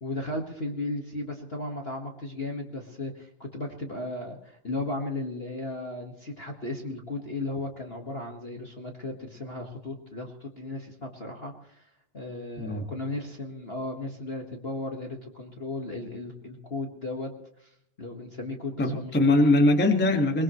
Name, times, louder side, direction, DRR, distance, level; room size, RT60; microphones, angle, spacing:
voice 1, 0.0-17.3 17.6-17.7 18.0-19.3, left 2 dB, 40° left, 1 dB, 0.9 m, -35 dB
voice 2, 12.6-12.9 18.8-20.4, left 2 dB, 10° left, 4 dB, 0.5 m, -22 dB
22.0 x 21.0 x 3.1 m, 0.73 s
omnidirectional pair, 3.5 m